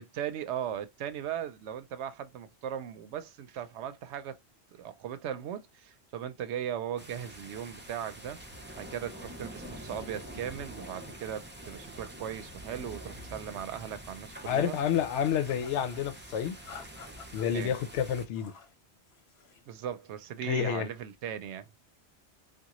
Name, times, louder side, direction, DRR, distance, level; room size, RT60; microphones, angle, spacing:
voice 1, 0.0-4.4 4.8-8.4 8.7-14.8 17.5-17.7 19.7-21.7, right 9 dB, 80° right, 0.9 m, -38 dB
sound 1, 7.0-18.3, right 1 dB, 15° right, 0.5 m, -46 dB
voice 2, 14.5-16.6 17.3-18.5 20.5-20.9, left 9 dB, 90° left, 0.9 m, -29 dB
sound 2, 15.2-16.0 16.6-17.5 18.1-18.8 19.1-19.7, left 5 dB, 70° left, 1.1 m, -51 dB
3.6 x 2.4 x 2.9 m
omnidirectional pair, 1.1 m